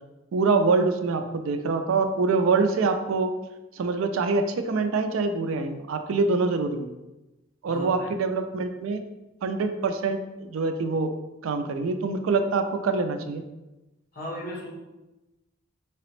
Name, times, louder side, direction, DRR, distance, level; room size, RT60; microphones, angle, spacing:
voice 1, 0.3-3.3 3.8-6.9 7.6-9.0 9.4-11.1 11.4-13.4, right 4 dB, 80° right, 8 dB, 0.4 m, -25 dB
voice 2, 7.6-8.1 14.1-14.7, equal, 45° left, -5 dB, 1.3 m, -36 dB
3.9 x 2.9 x 3.1 m, 1.0 s
head